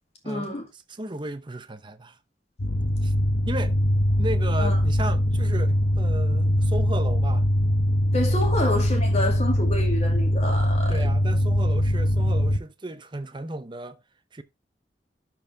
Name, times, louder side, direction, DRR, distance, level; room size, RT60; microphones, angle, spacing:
voice 1, 0.3-0.7 4.6-4.8 8.1-11.1, left 1 dB, 35° left, 2.4 m, -28 dB
voice 2, 0.9-2.2 3.0-3.1 3.5-3.7 4.2-7.5 10.9-14.0 14.3-14.4, right 2 dB, 25° right, 0.8 m, -34 dB
sound 1, 2.6-12.6, equal, 60° left, 0.9 m, -22 dB
12.0 x 4.7 x 3.5 m
head